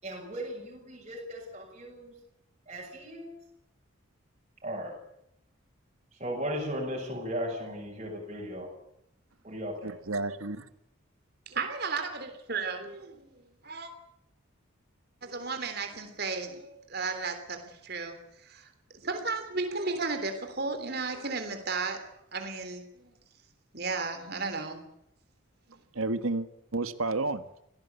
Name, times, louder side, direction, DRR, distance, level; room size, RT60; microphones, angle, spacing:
voice 1, 0.0-2.1 2.7-3.3 4.6-4.9 6.1-8.7 9.4-10.0, equal, 30° right, -2 dB, 7.1 m, -36 dB
voice 2, 9.8-10.7 25.9-26.5 26.7-27.5, right 3 dB, 80° right, 11 dB, 1.5 m, -31 dB
voice 3, 11.5-13.9 15.2-18.2 18.4-18.7 18.9-23.1 23.7-24.8 25.7-25.8, right 4 dB, 50° right, 7 dB, 3.3 m, -34 dB
26.0 x 17.5 x 8.3 m, 0.79 s
head